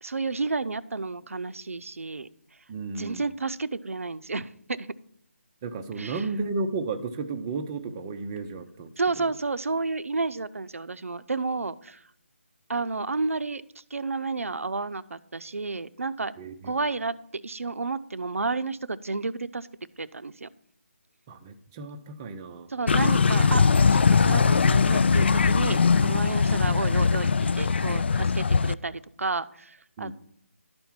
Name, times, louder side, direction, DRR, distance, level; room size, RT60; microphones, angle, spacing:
voice 1, 0.0-2.3 3.0-4.9 6.0-6.3 9.0-12.0 12.7-13.6 13.9-16.3 16.6-19.7 20.0-20.5 22.7-23.6 23.9-27.3 27.6-30.1, right 3 dB, 85° right, 13 dB, 0.6 m, -31 dB
voice 2, 2.7-3.3 5.6-9.3 16.4-16.7 21.3-22.7 30.0-30.1, right 3 dB, 15° right, 6 dB, 0.5 m, -33 dB
sound 1, 22.9-28.7, left 5 dB, 50° left, 0.3 m, -21 dB
12.0 x 4.4 x 7.3 m, 0.68 s
figure-of-eight pair, 165°, 7 cm